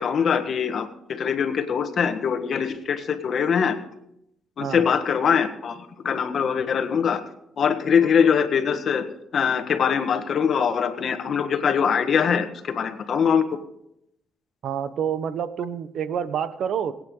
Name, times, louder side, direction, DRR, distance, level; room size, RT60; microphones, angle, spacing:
voice 1, 0.0-3.8 4.6-5.8 6.0-7.2 7.6-9.1 9.3-13.4, left 7 dB, 55° left, 8 dB, 1.5 m, -22 dB
voice 2, 14.6-16.9, right 8 dB, 70° right, 13 dB, 0.9 m, -28 dB
22.0 x 9.0 x 3.8 m, 0.79 s
cardioid pair, 90°, 0 cm